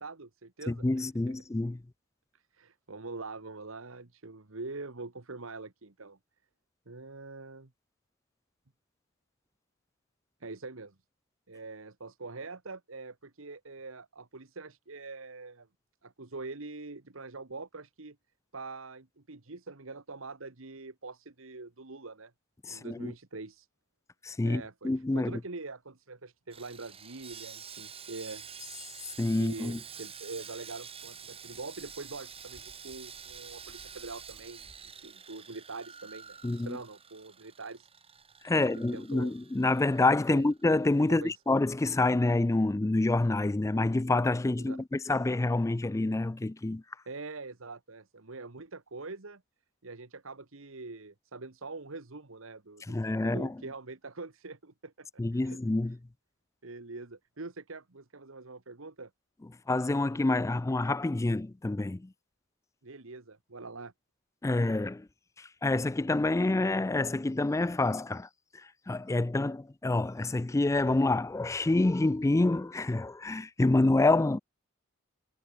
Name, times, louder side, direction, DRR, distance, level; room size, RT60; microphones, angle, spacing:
voice 1, 0.0-1.3 2.3-6.2 6.9-7.7 10.4-10.9 11.5-15.7 16.0-18.2 18.5-22.3 22.7-23.7 24.4-28.4 29.3-37.9 38.5-39.3 40.3-40.4 41.1-41.4 44.6-44.8 47.1-49.4 49.8-55.6 56.6-59.1 62.8-63.9, right 3 dB, 70° right, 1.5 m, -44 dB
voice 2, 0.7-1.8 22.7-23.1 24.2-25.3 29.2-29.8 36.4-36.8 38.4-46.8 52.9-53.5 55.2-56.0 59.7-62.1 64.4-65.1 65.4-68.3 68.9-74.4, left 2 dB, 15° left, 0.3 m, -27 dB
Sawing, 26.5-40.8 41.0-41.2 41.7-41.8, right 7 dB, 30° right, 3.8 m, -48 dB
head